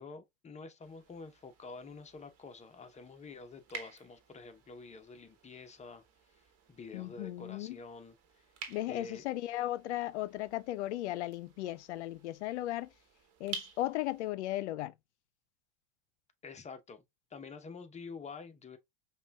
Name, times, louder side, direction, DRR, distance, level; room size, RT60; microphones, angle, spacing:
voice 1, 0.0-6.0 6.3-6.4 6.7-8.5 8.9-9.2 16.4-17.0 17.3-18.8, left 4 dB, 20° left, 0.7 m, -48 dB
sound 1, 0.8-14.3, right 5 dB, 45° right, 1.1 m, -51 dB
voice 2, 6.9-7.8 8.7-12.9 13.4-14.9, left 15 dB, 80° left, 0.5 m, -36 dB
5.2 x 2.3 x 2.2 m
hypercardioid pair, 85°, 34 cm